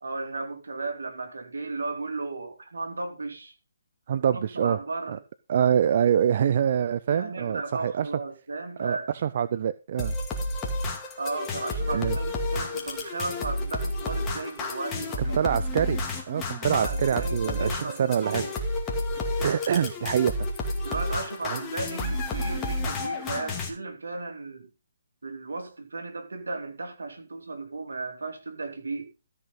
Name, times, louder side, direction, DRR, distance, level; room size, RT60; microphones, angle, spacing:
voice 1, 0.0-3.5 4.3-5.2 7.1-9.1 11.2-15.5 16.6-18.5 20.8-24.7 25.2-29.1, right 3 dB, 75° right, 2.8 m, -35 dB
voice 2, 4.1-4.8 5.1-5.2 5.5-8.1 8.8-10.2 11.9-12.2 15.3-16.0 16.3-18.4 19.1-20.5 21.5-21.6, right 8 dB, 45° right, 0.6 m, -25 dB
sound 1, 10.0-23.7, left 2 dB, 20° left, 2.3 m, -31 dB
13.5 x 5.9 x 5.4 m
figure-of-eight pair, 140°, 0 cm